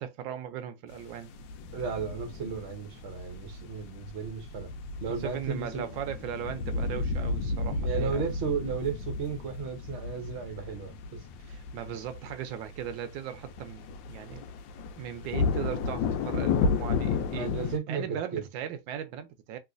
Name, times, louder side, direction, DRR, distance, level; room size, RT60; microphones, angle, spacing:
voice 1, 0.0-1.3 5.1-8.2 11.4-14.5 15.0-17.5 17.9-19.6, right 9 dB, 80° right, 1.3 m, -38 dB
sound 1, 0.9-17.8, left 4 dB, 80° left, 1.3 m, -33 dB
voice 2, 1.7-4.7 5.0-5.9 7.8-11.2 17.2-18.4, right 6 dB, 50° right, 0.9 m, -34 dB
3.0 x 3.0 x 2.5 m
omnidirectional pair, 2.0 m